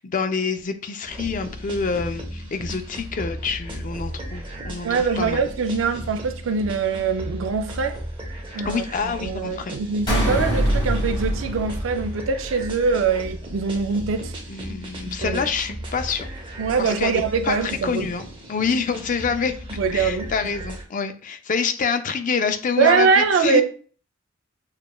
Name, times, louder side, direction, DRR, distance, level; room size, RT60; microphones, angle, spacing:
voice 1, 0.0-4.9 5.2-5.4 8.6-9.7 14.5-16.3 16.8-19.5 19.9-23.6, left 5 dB, 40° left, 0.4 m, -26 dB
sound 1, 1.1-20.8, equal, 25° right, 0.8 m, -35 dB
voice 2, 4.8-8.0 8.5-8.8 9.2-14.3 15.1-15.4 16.6-18.1 19.8-20.3 22.8-23.6, right 5 dB, 75° right, 0.4 m, -23 dB
sound 2, 10.1-12.6, equal, 25° left, 2.0 m, -24 dB
6.5 x 2.3 x 2.2 m
head